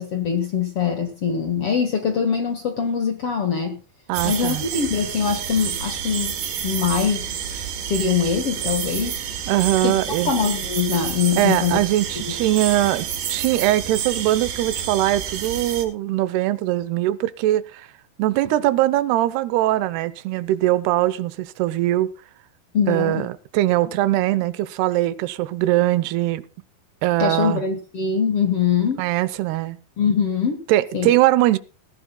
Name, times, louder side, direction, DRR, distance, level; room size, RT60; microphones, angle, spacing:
voice 1, 0.0-3.8 4.2-6.4 6.6-7.3 7.8-9.2 9.8-9.9 10.2-11.8 12.3-12.4 22.7-23.3 27.2-29.0 30.0-30.6 30.9-31.1, left 6 dB, 55° left, 1.7 m, -23 dB
sound 1, 4.1-15.8, right 8 dB, 60° right, 3.2 m, -29 dB
voice 2, 4.1-4.6 9.5-10.3 11.4-17.9 18.2-22.1 22.9-26.4 27.0-27.6 29.0-29.8 30.7-31.6, right 15 dB, 85° right, 2.8 m, -21 dB
18.5 x 15.0 x 2.2 m
omnidirectional pair, 4.5 m